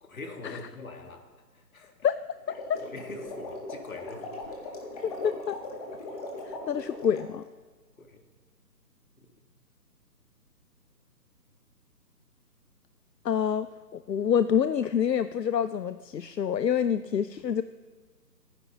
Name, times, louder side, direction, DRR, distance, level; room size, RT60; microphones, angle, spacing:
voice 1, 0.0-1.9 2.5-4.8 8.0-8.3 9.2-9.3, left 3 dB, 55° left, 4 dB, 2.0 m, -44 dB
sound 1, 2.4-7.3, left 2 dB, 25° left, 1.5 m, -39 dB
voice 2, 2.5-2.8 5.2-5.6 6.5-7.4 13.2-17.6, left 8 dB, 80° left, 14 dB, 0.6 m, -27 dB
27.5 x 9.9 x 3.0 m, 1.4 s
figure-of-eight pair, 145°, 49 cm